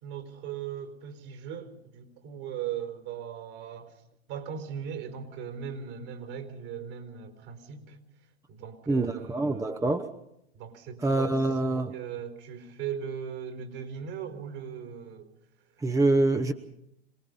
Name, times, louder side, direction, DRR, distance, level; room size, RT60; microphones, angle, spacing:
voice 1, 0.0-3.9 4.3-8.0 8.5-9.7 10.5-11.5 11.9-15.3, right 8 dB, 55° right, 6 dB, 4.5 m, -38 dB
voice 2, 8.9-10.1 11.0-11.9 15.8-16.5, right 2 dB, 10° right, 9 dB, 1.0 m, -25 dB
27.0 x 20.0 x 5.5 m, 0.79 s
hypercardioid pair, 90°, 31 cm